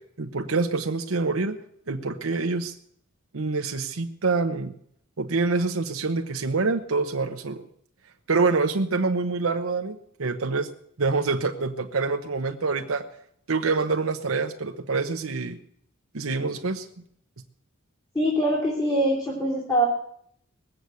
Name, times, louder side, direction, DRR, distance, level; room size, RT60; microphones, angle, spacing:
voice 1, 0.2-1.6 1.9-2.7 3.3-4.7 5.2-7.6 8.3-10.7 11.0-13.0 13.5-15.6 16.1-16.9, right 3 dB, 85° right, 6 dB, 0.9 m, -26 dB
voice 2, 18.1-19.9, right 1 dB, 20° left, -6 dB, 2.9 m, -23 dB
19.5 x 7.9 x 8.3 m, 0.71 s
head